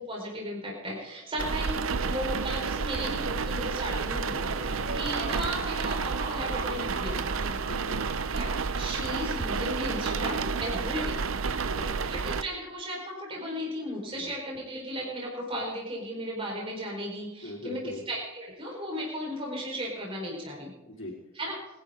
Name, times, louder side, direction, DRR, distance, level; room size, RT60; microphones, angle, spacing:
voice 1, 0.0-7.6 8.3-11.2 12.1-20.7 21.3-21.6, equal, 25° right, -3 dB, 4.6 m, -35 dB
sound 1, 1.4-12.4, right 5 dB, 80° right, 0.7 m, -30 dB
sound 2, 4.2-9.3, right 2 dB, 50° right, 3.5 m, -41 dB
voice 2, 7.6-8.0 11.6-12.3 14.1-14.3 17.4-18.0 20.8-21.2, equal, 70° left, -1 dB, 4.4 m, -41 dB
24.0 x 11.5 x 3.8 m, 1.0 s
head